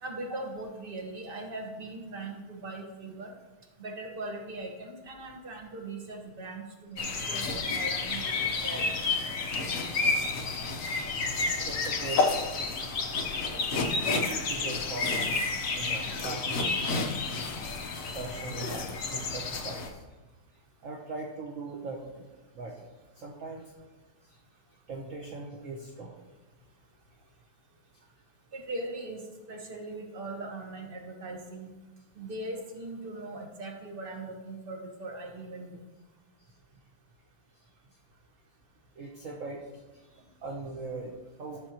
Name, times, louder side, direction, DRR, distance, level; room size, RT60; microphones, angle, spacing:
voice 1, 0.0-3.3 3.8-9.0 28.5-31.7 32.2-35.7, right 2 dB, 30° right, 1 dB, 1.2 m, -40 dB
sound 1, 7.0-19.9, left 3 dB, 50° left, 1.1 m, -30 dB
voice 2, 10.8-11.4 11.6-12.7 13.7-15.4 15.7-16.5 17.8-20.0 20.8-22.3 22.5-22.9 23.1-23.7 24.3-24.4 24.9-26.3 39.0-41.6, right 3 dB, 50° right, 0 dB, 1.0 m, -41 dB
14.0 x 6.7 x 2.9 m, 1.2 s
omnidirectional pair, 2.3 m